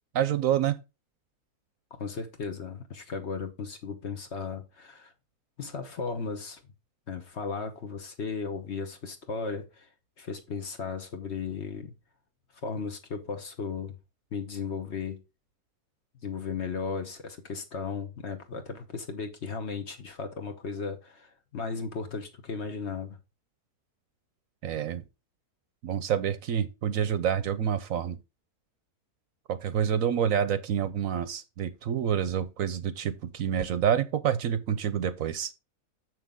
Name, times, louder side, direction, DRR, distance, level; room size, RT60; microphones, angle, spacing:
voice 1, 0.1-0.8 24.6-25.0 25.8-28.2 29.5-35.5, right 9 dB, 70° right, 1.0 m, -28 dB
voice 2, 1.9-5.1 5.6-6.6 7.1-9.9 10.2-11.9 12.6-14.0 14.3-15.2 16.2-23.2, left 5 dB, 50° left, 1.2 m, -35 dB
7.2 x 6.1 x 3.7 m
omnidirectional pair, 1.6 m